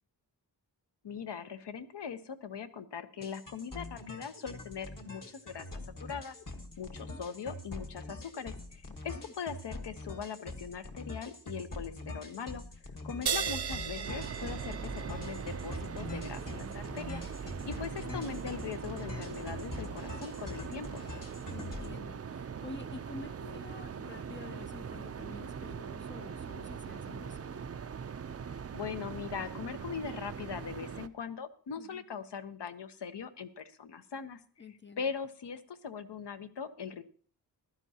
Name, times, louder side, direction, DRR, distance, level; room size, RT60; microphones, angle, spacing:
voice 1, 1.0-5.7 6.0-6.4 6.8-12.6 13.0-21.0 28.7-34.4 35.0-37.0, left 6 dB, 75° left, 10 dB, 1.0 m, -41 dB
sound 1, 3.2-22.0, left 2 dB, 50° left, 1.5 m, -44 dB
voice 2, 8.9-9.3 13.1-13.6 17.6-18.3 21.5-27.8 31.8-32.0 34.6-35.1, left 4 dB, 30° left, 10 dB, 0.4 m, -49 dB
sound 2, 13.3-20.2, right 7 dB, 65° right, 0.8 m, -39 dB
sound 3, 14.0-31.1, right 7 dB, 35° right, 0.4 m, -42 dB
15.0 x 12.0 x 2.8 m, 0.44 s
wide cardioid pair, 115°, 42 cm